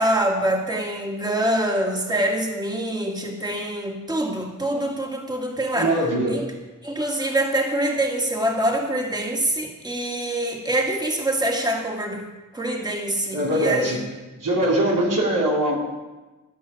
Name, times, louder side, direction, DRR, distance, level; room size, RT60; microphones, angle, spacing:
voice 1, 0.0-5.9 6.3-6.5 6.8-12.2 12.5-14.0, right 1 dB, 15° right, 1 dB, 1.8 m, -25 dB
voice 2, 5.7-6.5 13.3-14.0 14.4-15.8, right 1 dB, 80° right, -3 dB, 3.0 m, -22 dB
13.5 x 5.6 x 8.5 m, 1.2 s
wide cardioid pair, 65°, 32 cm